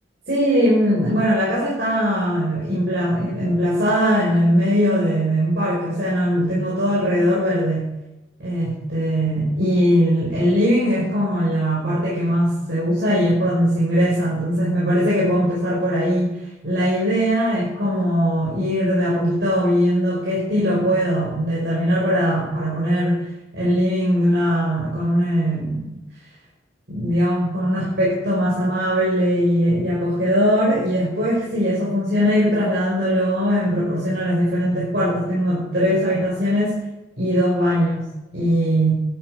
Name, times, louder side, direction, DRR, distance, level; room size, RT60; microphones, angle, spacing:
voice 1, 0.3-7.9 8.4-16.3 16.6-23.3 23.5-26.0 26.9-36.8 37.2-39.0, equal, 65° right, -7 dB, 5.1 m, -20 dB
14.5 x 12.0 x 4.9 m, 0.98 s
head